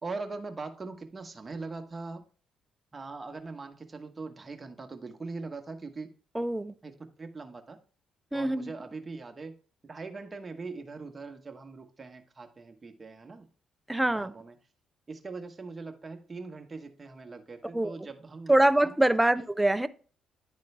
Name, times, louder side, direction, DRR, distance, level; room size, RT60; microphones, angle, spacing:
voice 1, 0.0-2.2 2.9-6.1 6.8-7.8 8.3-9.5 9.8-13.5 14.1-14.6 15.1-18.9 19.4-19.5, right 3 dB, 25° right, 1.1 m, -41 dB
voice 2, 6.4-6.7 8.3-8.7 13.9-14.3 17.7-17.9 18.5-19.9, right 1 dB, 10° right, 0.5 m, -24 dB
11.0 x 3.7 x 3.3 m
cardioid pair, 90°, 0 cm